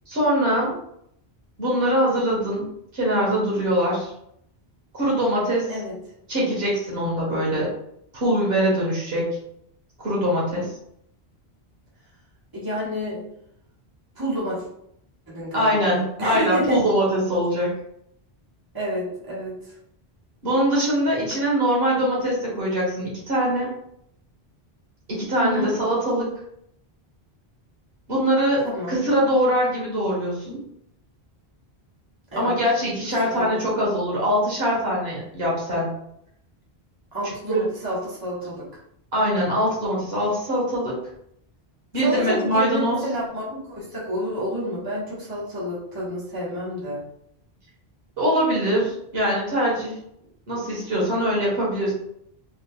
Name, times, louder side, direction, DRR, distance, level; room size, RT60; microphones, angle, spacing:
voice 1, 0.1-0.7 1.6-2.6 2.9-4.1 4.9-5.7 6.3-7.7 8.1-9.3 10.0-10.7 15.5-17.7 20.4-23.7 25.1-26.3 28.1-30.6 32.4-35.9 37.5-37.6 39.1-40.9 41.9-43.0 48.2-49.9 50.5-51.9, equal, 70° right, -5 dB, 1.6 m, -22 dB
voice 2, 12.5-13.2 14.1-14.6 15.3-16.8 18.7-19.5 25.4-25.7 28.6-29.0 32.3-32.5 33.3-33.9 37.1-38.6 42.0-47.0, equal, 20° right, -8 dB, 1.3 m, -29 dB
3.7 x 3.4 x 2.3 m, 0.74 s
omnidirectional pair, 1.1 m